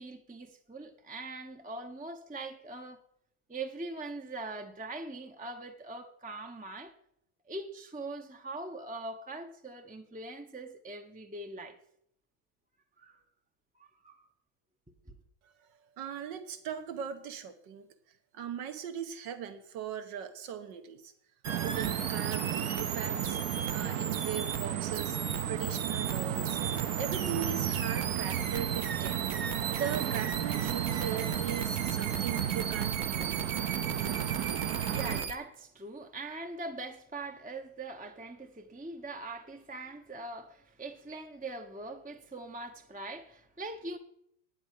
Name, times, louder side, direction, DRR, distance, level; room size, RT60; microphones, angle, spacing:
voice 1, 0.0-3.0 3.5-6.9 7.5-11.8 13.0-13.2 13.8-14.3 15.1-15.2 34.9-44.0, right 2 dB, 10° right, 0.4 m, -42 dB
voice 2, 16.0-17.9 18.3-21.1 21.6-23.4 23.7-25.2 25.5-26.6 27.0-29.3 29.8-33.4, right 8 dB, 85° right, 1.8 m, -39 dB
sound 1, 21.4-35.4, right 6 dB, 45° right, 1.1 m, -37 dB
sound 2, 21.5-35.2, right 11 dB, 65° right, 1.0 m, -33 dB
9.6 x 8.7 x 9.2 m
omnidirectional pair, 1.9 m